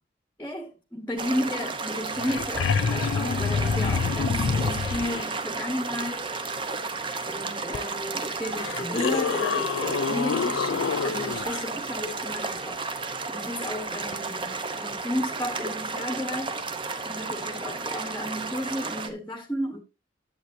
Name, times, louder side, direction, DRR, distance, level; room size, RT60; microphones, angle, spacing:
voice 1, 0.4-6.3 7.3-16.6 17.0-19.8, left 1 dB, 10° left, 1.2 m, -33 dB
sound 1, 1.2-19.1, right 4 dB, 25° right, 0.9 m, -33 dB
sound 2, 1.9-2.0 2.1-5.2 7.7-7.8 8.5-11.6 14.1-14.2, left 5 dB, 80° left, 0.4 m, -27 dB
11.0 x 8.1 x 2.7 m
head